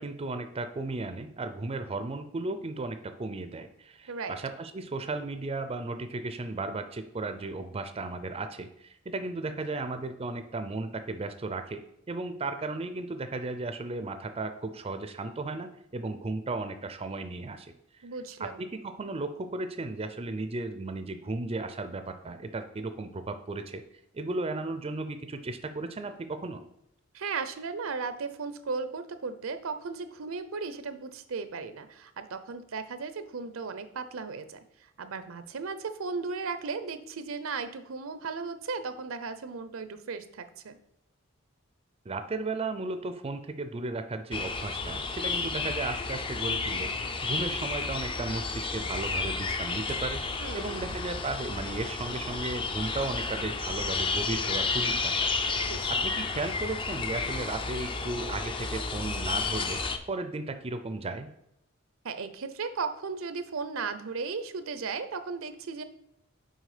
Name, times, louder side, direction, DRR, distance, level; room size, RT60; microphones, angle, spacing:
voice 1, 0.0-11.8 12.1-17.7 18.4-23.8 24.1-26.6 42.1-59.8 60.1-61.3, right 3 dB, 30° right, 9 dB, 0.5 m, -35 dB
voice 2, 4.1-4.4 18.0-18.6 27.1-34.6 35.0-40.8 50.4-51.0 55.6-55.9 62.0-65.8, right 4 dB, 75° right, 11 dB, 0.6 m, -36 dB
sound 1, 44.3-60.0, left 4 dB, 25° left, 0.5 m, -31 dB
6.4 x 4.6 x 4.9 m, 0.80 s
head